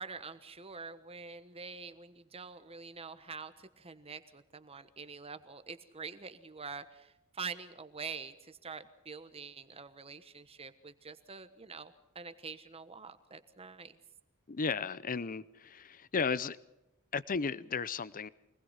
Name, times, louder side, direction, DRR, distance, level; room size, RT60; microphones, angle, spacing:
voice 1, 0.0-14.0, right 5 dB, 25° right, 1.2 m, -46 dB
voice 2, 14.5-16.6 17.1-18.3, left 5 dB, 40° left, 0.6 m, -34 dB
25.0 x 19.5 x 5.7 m
head